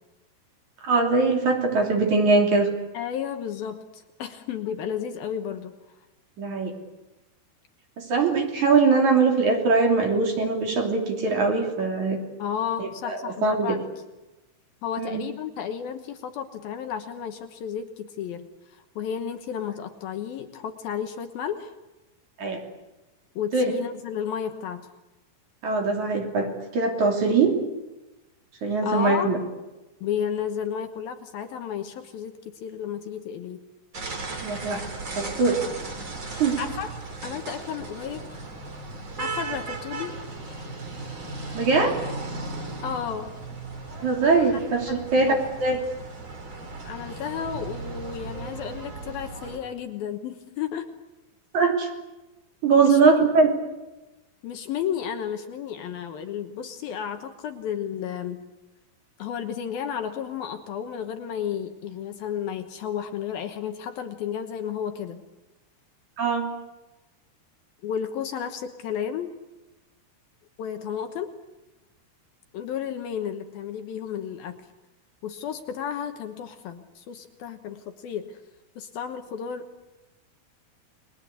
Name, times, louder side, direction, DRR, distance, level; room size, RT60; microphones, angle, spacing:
voice 1, 0.8-2.7 6.4-6.7 8.0-12.2 12.8-13.7 15.0-15.2 22.4-22.6 23.5-23.7 25.6-26.5 26.7-27.6 28.6-29.4 34.4-34.9 35.2-35.6 36.4-36.6 41.5-41.9 44.0-45.3 45.6-45.8 51.5-51.9 52.6-53.5 66.2-66.5, right 4 dB, 45° right, 2 dB, 4.2 m, -21 dB
voice 2, 2.9-5.7 12.4-13.8 14.8-21.7 23.4-24.9 28.8-29.3 30.0-32.3 32.6-33.6 36.2-36.9 37.2-38.3 39.2-40.2 42.8-43.4 44.9-45.4 46.8-50.9 52.8-53.0 54.4-58.4 59.2-65.2 67.8-69.3 70.6-71.3 72.5-74.6 75.2-78.4 78.8-79.7, left 8 dB, 70° left, 6 dB, 2.7 m, -32 dB
sound 1, 33.9-49.6, right 3 dB, 30° right, 3.6 m, -36 dB
30.0 x 22.0 x 8.3 m, 1.0 s
omnidirectional pair, 4.9 m